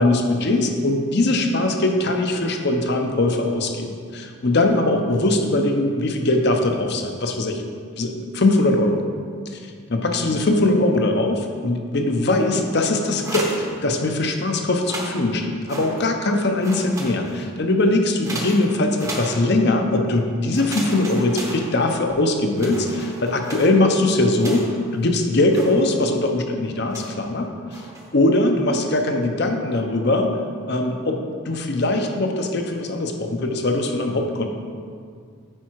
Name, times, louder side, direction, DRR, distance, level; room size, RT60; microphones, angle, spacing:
voice 1, 0.0-7.6 8.0-9.0 9.5-9.6 9.9-27.8 28.1-30.3 30.7-34.5, left 2 dB, 50° left, 4 dB, 0.7 m, -21 dB
sound 1, 13.1-14.3 14.7-16.3 16.6-17.6 18.2-19.8 20.5-22.2 22.5-24.9 25.5-26.2 26.9-27.3 27.7-28.2, right 1 dB, 15° right, 0.8 m, -35 dB
8.9 x 4.7 x 4.6 m, 2.1 s
head